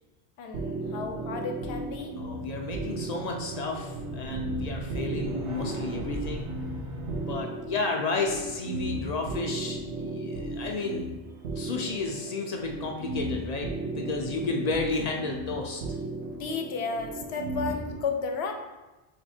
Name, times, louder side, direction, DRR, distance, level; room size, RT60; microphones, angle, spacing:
voice 1, 0.4-2.1 16.3-18.5, left 4 dB, 80° left, 4 dB, 0.8 m, -33 dB
sound 1, 0.5-18.0, right 2 dB, 90° right, 0.9 m, -35 dB
voice 2, 2.2-6.5 7.3-11.1 11.6-15.8, left 3 dB, 55° left, 1 dB, 0.5 m, -32 dB
sound 2, 2.3-7.3, right 1 dB, 45° right, 0.4 m, -38 dB
3.5 x 2.9 x 4.1 m, 1.1 s
omnidirectional pair, 1.1 m